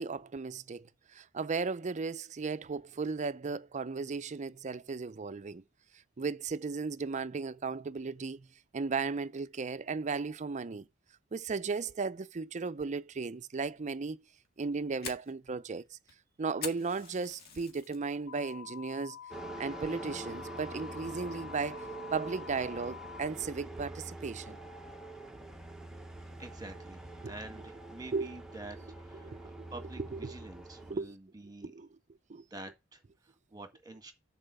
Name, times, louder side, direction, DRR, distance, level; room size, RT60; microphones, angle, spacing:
voice 1, 0.0-5.6 6.2-8.5 8.7-10.9 11.3-14.2 14.6-16.0 16.4-19.2 19.6-21.8 22.1-24.6 27.2-27.3 28.1-28.3 29.2-29.7 30.1-30.3 30.9-31.1 31.6-31.9 32.3-32.4, right 4 dB, 35° right, 0.5 m, -35 dB
Fire, 14.4-18.0 18.4-18.8 19.2-19.3 19.8-20.2, left 5 dB, 50° left, 1.8 m, -44 dB
sound 1, 18.3-23.3, left 8 dB, 85° left, 0.5 m, -47 dB
sound 2, 19.3-30.9, right 2 dB, 5° right, 1.0 m, -45 dB
voice 2, 26.4-31.7 32.5-34.1, right 2 dB, 20° right, 1.7 m, -48 dB
7.1 x 4.3 x 6.8 m
head